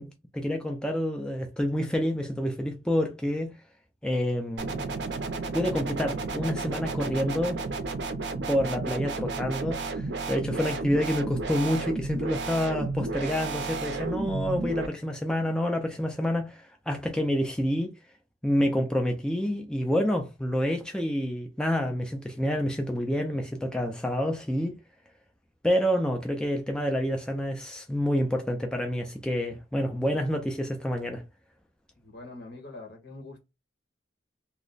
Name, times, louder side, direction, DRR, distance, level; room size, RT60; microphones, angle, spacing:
voice 1, 0.0-3.5 4.0-4.8 5.5-7.6 8.5-17.9 18.4-24.8 25.6-31.2, equal, 5° left, 0.4 m, -28 dB
sound 1, 4.6-14.9, right 3 dB, 65° right, 0.5 m, -32 dB
voice 2, 32.0-33.4, left 2 dB, 65° left, 1.3 m, -44 dB
2.9 x 2.1 x 3.9 m
head